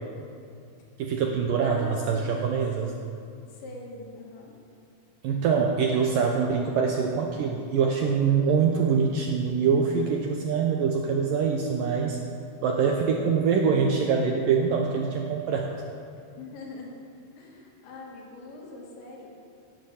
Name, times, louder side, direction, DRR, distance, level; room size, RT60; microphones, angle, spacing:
voice 1, 1.0-2.9 5.2-12.2 12.6-15.7, right 6 dB, 75° right, 1 dB, 2.1 m, -24 dB
voice 2, 1.6-2.6 3.4-4.5 16.1-16.9 17.4-19.4, left 3 dB, 80° left, -1 dB, 4.6 m, -43 dB
16.5 x 10.5 x 7.2 m, 2.4 s
omnidirectional pair, 5.1 m